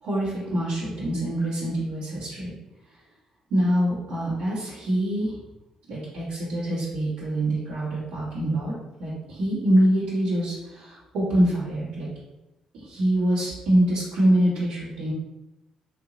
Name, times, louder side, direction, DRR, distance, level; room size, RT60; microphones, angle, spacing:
voice 1, 0.0-2.5 3.5-5.4 5.9-8.7 9.0-12.1 12.7-15.1, right 1 dB, 80° right, -10 dB, 1.4 m, -25 dB
2.9 x 2.8 x 3.8 m, 0.94 s
hypercardioid pair, 50°, 2 cm